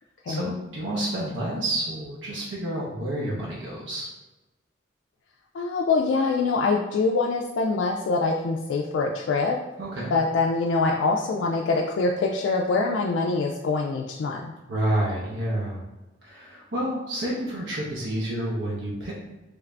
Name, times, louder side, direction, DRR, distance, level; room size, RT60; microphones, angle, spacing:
voice 1, 0.3-4.1 9.8-10.1 14.7-15.8 16.2-19.1, right 1 dB, 80° right, -5 dB, 0.7 m, -29 dB
voice 2, 5.5-9.6 10.1-14.5, left 3 dB, 80° left, 0 dB, 0.3 m, -24 dB
3.2 x 2.5 x 3.2 m, 1.1 s
head